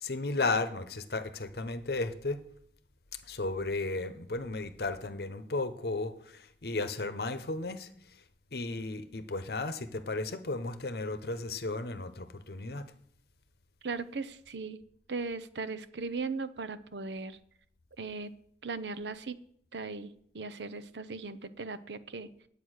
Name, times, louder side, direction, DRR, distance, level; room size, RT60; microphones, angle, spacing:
voice 1, 0.0-2.4 3.3-6.1 6.6-7.9 8.5-12.8, left 3 dB, 65° left, 11 dB, 0.9 m, -34 dB
voice 2, 13.8-14.8 15.1-17.4 18.0-18.3 18.6-19.4 19.7-22.3, right 4 dB, 85° right, 13 dB, 0.7 m, -38 dB
9.3 x 8.5 x 6.4 m, 0.65 s
head